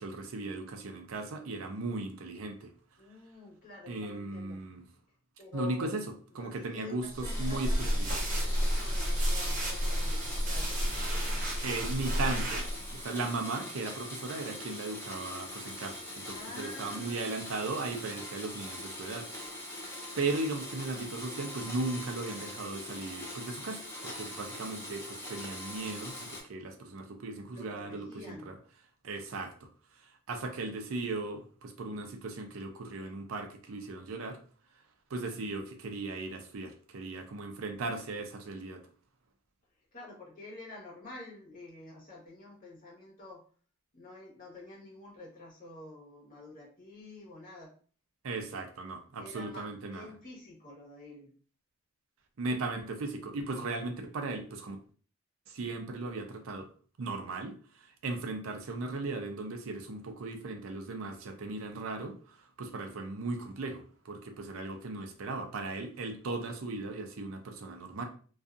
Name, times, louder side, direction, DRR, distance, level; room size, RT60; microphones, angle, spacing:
voice 1, 0.0-2.7 3.9-4.9 5.5-6.0 6.3-7.0 7.4-8.2 11.6-19.3 20.2-28.6 29.0-29.7 30.3-34.4 35.1-38.8 48.2-50.1 52.4-54.8 55.5-56.7 57.0-57.5 58.0-68.0, right 3 dB, 90° right, 5 dB, 0.5 m, -37 dB
voice 2, 3.0-4.6 5.4-6.0 6.4-10.7 16.3-17.5 27.5-28.5 39.9-43.4 43.9-47.7 48.5-48.6 49.2-51.3, left 3 dB, 45° left, -4 dB, 1.1 m, -48 dB
sound 1, 7.1-13.0, equal, 40° right, 0.8 m, -31 dB
Domestic sounds home sounds, 7.2-26.4, left 1 dB, 15° left, 0.6 m, -43 dB
2.6 x 2.3 x 2.4 m, 0.42 s
head